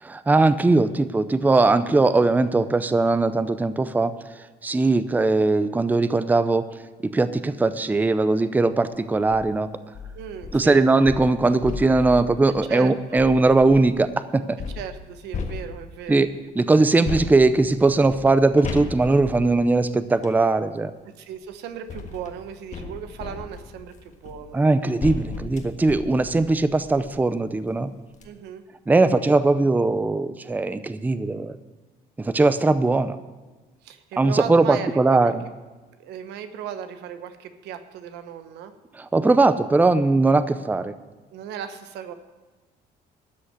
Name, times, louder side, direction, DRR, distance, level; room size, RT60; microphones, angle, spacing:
voice 1, 0.0-4.1 4.6-6.6 7.1-9.7 10.5-14.6 16.1-16.3 16.6-20.9 24.5-27.9 28.9-31.6 32.2-33.2 34.2-35.5 39.0-40.9, right 3 dB, 10° right, 12 dB, 0.5 m, -20 dB
sound 1, 9.1-9.5 9.9-14.0 14.6-16.1 17.0-20.4 21.4-27.3 27.7-27.8 28.1-28.3, left 5 dB, 45° left, 1.5 m, -36 dB
voice 2, 10.1-10.9 12.6-13.2 14.7-16.2 21.0-24.6 28.2-28.6 33.8-35.3 36.0-38.7 41.3-42.1, right 9 dB, 85° right, 9 dB, 1.1 m, -36 dB
13.0 x 6.4 x 8.1 m, 1.2 s
cardioid pair, 110°, 17 cm